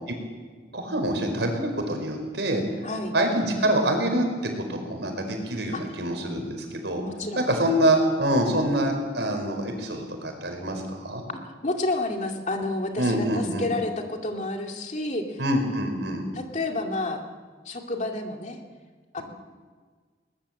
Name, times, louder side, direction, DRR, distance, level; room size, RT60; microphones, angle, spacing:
voice 1, 0.7-2.8 3.1-7.0 7.3-11.2 13.0-13.7 15.4-16.2, right 1 dB, 80° right, 4 dB, 4.9 m, -25 dB
voice 2, 2.8-3.1 5.7-6.0 7.0-7.5 11.3-15.4 16.3-17.3 17.6-18.6 19.1-19.2, left 2 dB, 40° left, 3 dB, 2.4 m, -30 dB
21.5 x 19.5 x 7.6 m, 1.5 s
head